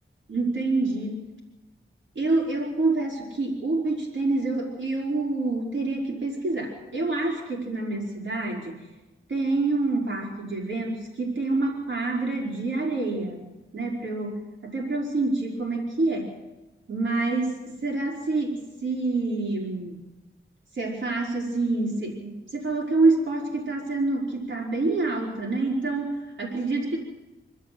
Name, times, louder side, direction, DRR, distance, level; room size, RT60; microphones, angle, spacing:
voice 1, 0.3-1.2 2.1-8.8 9.3-13.4 13.7-16.3 16.9-20.0 20.7-27.0, right 3 dB, 65° right, -2 dB, 4.8 m, -27 dB
25.5 x 13.0 x 7.8 m, 1.1 s
wide cardioid pair, 110°, 21 cm